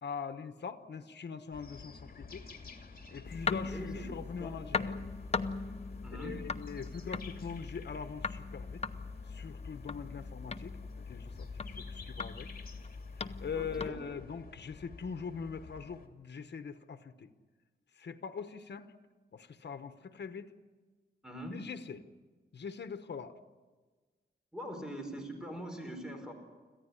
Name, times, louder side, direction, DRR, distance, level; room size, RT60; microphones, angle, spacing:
voice 1, 0.0-2.5 3.1-5.0 6.1-8.8 9.3-12.5 13.2-17.3 17.9-18.9 19.3-20.5 21.5-22.0 22.5-23.4, left 6 dB, 70° left, 9 dB, 1.1 m, -42 dB
sound 1, 1.5-16.1, left 4 dB, 55° left, 2.7 m, -51 dB
sound 2, 3.2-13.9, left 4 dB, 35° left, 0.8 m, -40 dB
voice 2, 3.5-4.0 4.3-4.5 6.0-6.4 13.5-14.0 21.2-21.6 24.5-26.3, equal, 5° right, 4 dB, 4.6 m, -42 dB
26.5 x 15.0 x 9.8 m, 1.4 s
wide cardioid pair, 135°, 18 cm